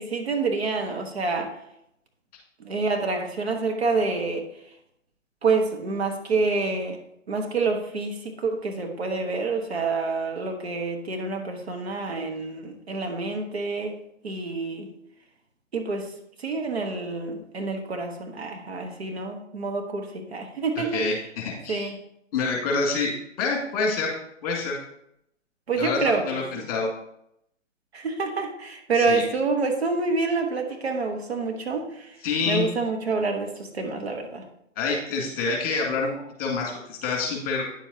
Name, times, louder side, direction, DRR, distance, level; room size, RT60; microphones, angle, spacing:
voice 1, 0.0-1.5 2.6-4.4 5.4-7.0 7.3-13.9 14.2-14.9 15.7-16.1 16.4-21.0 21.7-22.0 25.7-26.7 27.9-32.1 32.5-34.4, right 4 dB, 55° right, 4 dB, 1.3 m, -27 dB
voice 2, 20.8-21.9 22.3-23.1 23.4-24.1 24.4-24.8 25.8-26.9 28.9-29.2 32.2-32.7 34.8-36.1 36.4-37.7, left 4 dB, 30° left, -2 dB, 2.3 m, -27 dB
9.8 x 7.2 x 2.8 m, 0.77 s
figure-of-eight pair, 135°, 38 cm